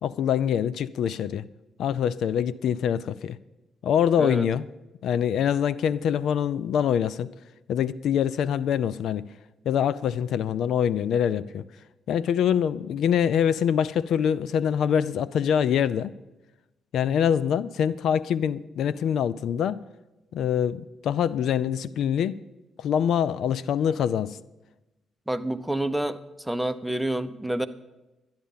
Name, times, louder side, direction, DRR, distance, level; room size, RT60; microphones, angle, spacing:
voice 1, 0.0-1.4 1.8-3.4 3.8-4.6 5.0-7.3 7.7-9.3 9.7-11.6 12.1-16.1 16.9-19.8 20.3-22.4 22.8-24.4, left 8 dB, 75° left, 0.4 m, -24 dB
voice 2, 25.3-27.7, right 1 dB, 5° right, 0.8 m, -28 dB
12.5 x 10.5 x 5.6 m
cardioid pair, 90°, 0 cm